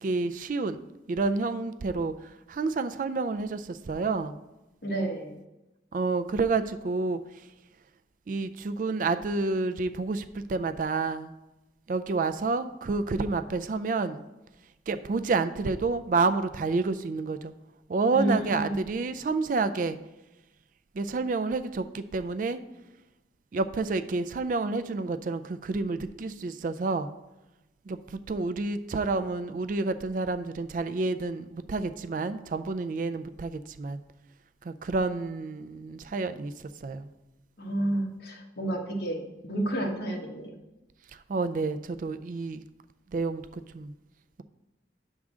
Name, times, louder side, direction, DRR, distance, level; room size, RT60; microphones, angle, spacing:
voice 1, 0.0-0.8 1.1-4.4 5.9-7.2 8.3-11.3 11.9-14.2 14.9-17.5 17.9-20.0 20.9-22.6 23.5-27.1 27.9-34.0 34.6-37.1 41.3-42.6 43.1-43.9, right 3 dB, 45° right, 11 dB, 0.3 m, -29 dB
voice 2, 4.8-5.3 18.1-18.7 37.6-40.6, right 1 dB, 65° left, 1 dB, 1.2 m, -30 dB
8.6 x 3.6 x 6.2 m, 1.0 s
head